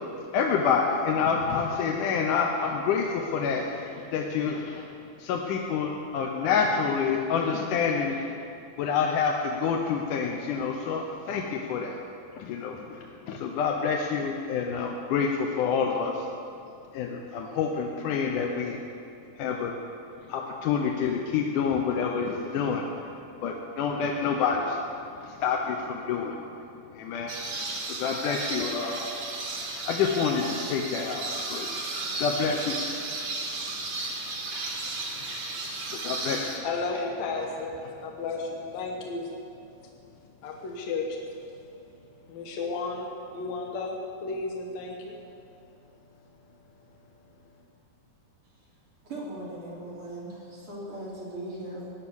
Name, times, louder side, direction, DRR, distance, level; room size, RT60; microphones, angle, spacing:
voice 1, 0.3-4.8 5.2-8.3 8.8-12.0 12.4-13.0 13.3-16.2 16.9-18.8 19.4-19.7 20.3-22.8 23.4-24.8 25.2-26.4 27.0-27.3 28.0-29.1 29.9-31.7 32.2-32.9 36.0-36.5, left 6 dB, 85° left, 1 dB, 2.5 m, -27 dB
sound 1, 27.3-36.6, right 3 dB, 65° right, 3.3 m, -34 dB
voice 2, 36.5-39.3 39.8-41.3 41.6-41.7 42.3-45.7 46.1-46.2 46.7-46.8 47.4-47.5, left 3 dB, 65° left, 0 dB, 2.4 m, -34 dB
voice 3, 49.0-51.9, right 1 dB, 45° right, -6 dB, 3.8 m, -38 dB
17.5 x 10.5 x 7.1 m, 2.5 s
omnidirectional pair, 3.6 m